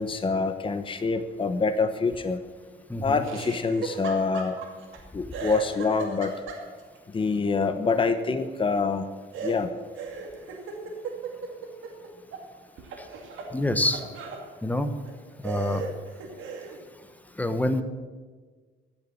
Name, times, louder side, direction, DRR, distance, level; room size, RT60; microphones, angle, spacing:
voice 1, 0.0-2.4 3.0-4.6 5.1-6.3 7.1-9.1 9.4-9.7, left 4 dB, 25° left, 9 dB, 0.9 m, -26 dB
voice 2, 2.9-3.2 13.0-13.1 13.5-14.0 14.6-14.9 15.4-15.9 17.4-17.8, left 1 dB, 10° left, 9 dB, 1.3 m, -26 dB
Laughter, 3.2-5.0 5.3-7.0 9.3-12.5 12.8-14.4 15.0-15.1 15.4-16.8, right 4 dB, 80° right, 2.4 m, -37 dB
15.0 x 7.1 x 8.6 m, 1.4 s
cardioid pair, 90°, 20 cm